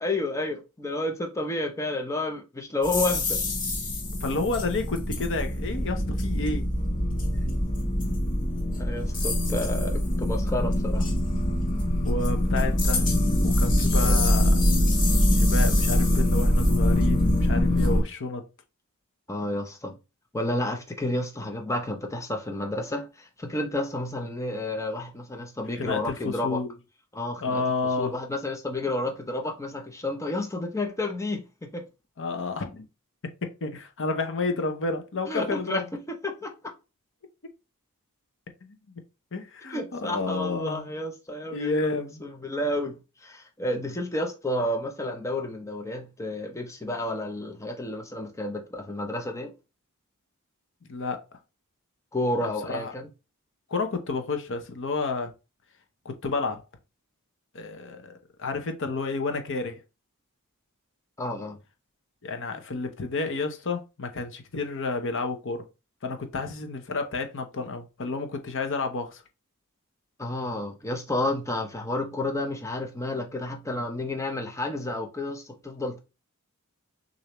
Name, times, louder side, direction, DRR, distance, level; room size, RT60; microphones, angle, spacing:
voice 1, 0.0-3.4 8.8-11.1 14.0-14.2 15.1-15.3 17.7-18.0 19.3-19.9 20.3-26.6 27.1-27.6 28.0-31.9 35.3-35.8 36.2-36.5 39.7-49.5 52.1-53.1 61.2-61.6 70.2-76.0, left 1 dB, 15° left, 0.7 m, -31 dB
sound 1, 2.8-18.0, left 1 dB, 35° left, 1.3 m, -23 dB
voice 2, 4.2-6.7 12.0-13.1 13.4-14.6 15.3-18.4 25.7-26.8 27.4-28.1 32.2-32.8 33.4-35.9 38.6-38.8 39.3-40.9 41.5-42.2 50.9-51.2 52.4-52.9 53.7-55.3 56.0-56.6 57.5-58.1 58.4-59.8 62.2-65.6 66.0-69.2, left 3 dB, 60° left, 0.8 m, -30 dB
6.5 x 2.7 x 3.0 m
head